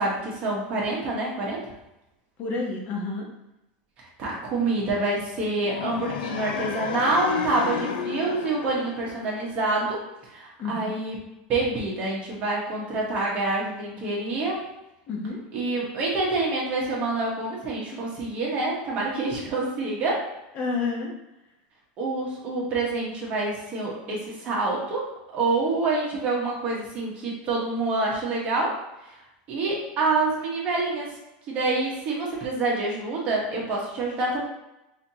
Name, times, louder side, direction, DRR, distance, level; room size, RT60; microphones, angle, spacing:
voice 1, 0.0-1.6 4.0-10.1 10.3-11.2 11.5-14.6 15.5-20.3 22.0-25.1 25.3-28.8 29.5-31.1 31.5-34.4, right 2 dB, 30° right, -4 dB, 1.3 m, -27 dB
voice 2, 2.4-3.3 10.6-10.9 15.1-15.4 20.5-21.1, left 3 dB, 30° left, -1 dB, 0.9 m, -29 dB
sound 1, 5.7-9.8, left 7 dB, 80° left, 0.5 m, -32 dB
5.5 x 2.8 x 2.9 m, 0.91 s
supercardioid pair, 165°, 5 cm